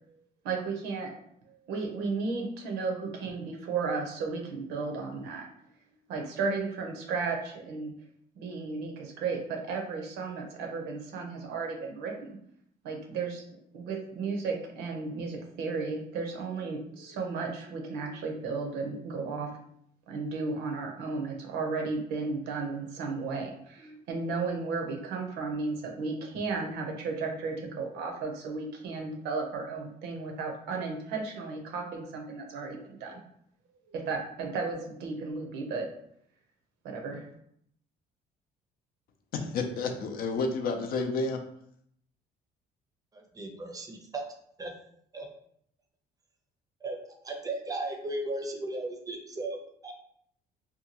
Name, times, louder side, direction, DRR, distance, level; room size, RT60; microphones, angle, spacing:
voice 1, 0.4-1.1 1.5-5.5 6.1-7.9 8.4-12.4 12.8-13.4 13.7-19.6 20.1-33.2 33.9-35.9 36.8-37.2, right 4 dB, 85° right, 2 dB, 0.6 m, -34 dB
voice 2, 39.3-41.4, left 3 dB, 60° left, 5 dB, 0.5 m, -30 dB
voice 3, 43.1-44.2 44.6-44.7 45.1-45.3 46.8-47.0 47.2-49.9, right 2 dB, 20° right, 4 dB, 0.5 m, -36 dB
2.7 x 2.2 x 2.8 m, 0.70 s
cardioid pair, 110°, 17 cm